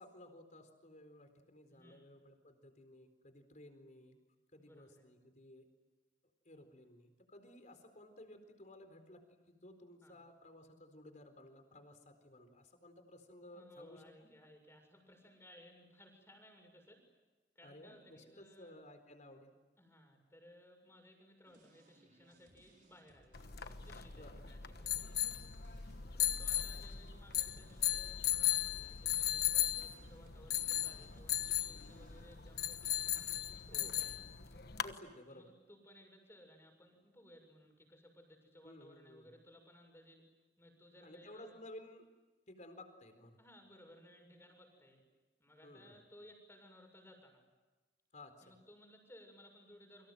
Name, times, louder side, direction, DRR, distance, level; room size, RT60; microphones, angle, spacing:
voice 1, 0.0-4.2 4.5-5.7 6.4-14.3 17.6-19.5 24.1-24.4 26.7-26.8 33.7-34.0 34.8-35.5 38.6-39.4 41.0-42.1 42.5-43.4 45.6-46.0 48.1-48.5, left 1 dB, 45° left, 7 dB, 4.3 m, -56 dB
voice 2, 1.7-2.1 4.5-5.1 10.0-10.2 13.5-17.2 17.6-18.7 19.8-25.2 26.1-34.3 35.3-40.2 40.6-41.5 43.4-45.0 45.4-47.4 48.4-50.1, equal, 15° left, 4 dB, 6.9 m, -61 dB
sound 1, 21.5-34.2, right 1 dB, 45° right, 4.1 m, -67 dB
sound 2, 23.3-34.9, left 11 dB, 60° left, 1.2 m, -37 dB
29.0 x 25.5 x 7.9 m, 1.2 s
head